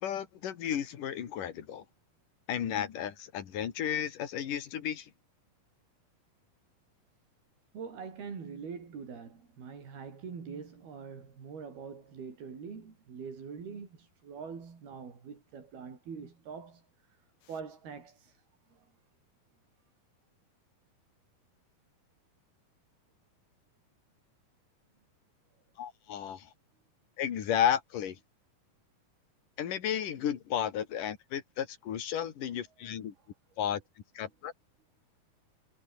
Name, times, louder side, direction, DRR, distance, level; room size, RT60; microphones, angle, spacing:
voice 1, 0.0-1.9 2.5-5.1 25.8-26.5 27.2-28.2 29.6-33.1 33.6-33.8 34.2-34.5, left 9 dB, 65° left, 3.6 m, -33 dB
voice 2, 7.7-16.8 17.5-18.4 18.7-18.9, right 6 dB, 85° right, 6.8 m, -44 dB
omnidirectional pair, 4.3 m